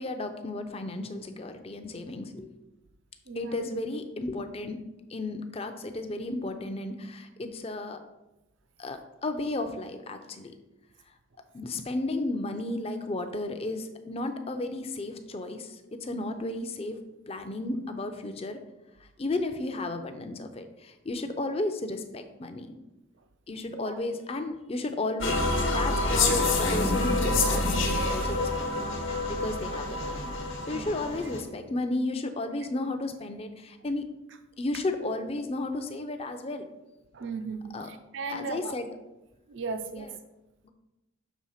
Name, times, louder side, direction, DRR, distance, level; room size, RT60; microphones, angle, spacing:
voice 1, 0.0-2.5 3.4-4.8 5.1-8.0 8.8-10.5 11.5-17.0 17.3-18.6 19.0-22.7 23.5-25.3 25.7-30.3 30.7-34.0 34.6-36.7 37.7-37.9 38.3-38.9 40.0-40.1 40.6-40.7, left 2 dB, 30° left, 7 dB, 0.5 m, -33 dB
voice 2, 3.3-3.7 23.7-24.0 30.7-30.9 37.1-38.7 39.5-40.1, right 4 dB, 60° right, 8 dB, 0.5 m, -36 dB
sound 1, 25.2-31.4, left 2 dB, 70° left, 1.1 m, -27 dB
6.2 x 3.4 x 5.6 m, 0.97 s
head